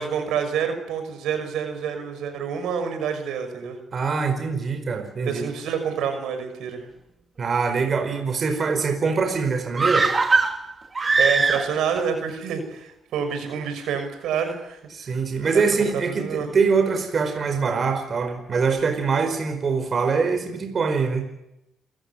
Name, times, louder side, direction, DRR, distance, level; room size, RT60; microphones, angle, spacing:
voice 1, 0.0-3.8 5.2-6.8 11.2-15.2 15.4-15.6 16.1-16.5, right 7 dB, 85° right, 7 dB, 6.1 m, -28 dB
voice 2, 3.9-5.5 7.4-10.1 14.9-21.3, right 5 dB, 45° right, 6 dB, 4.9 m, -23 dB
sound 1, 9.8-12.0 12.3-12.4, right 3 dB, 30° right, 2.9 m, -21 dB
28.5 x 15.5 x 9.9 m, 0.86 s
cardioid pair, 90°, 0 cm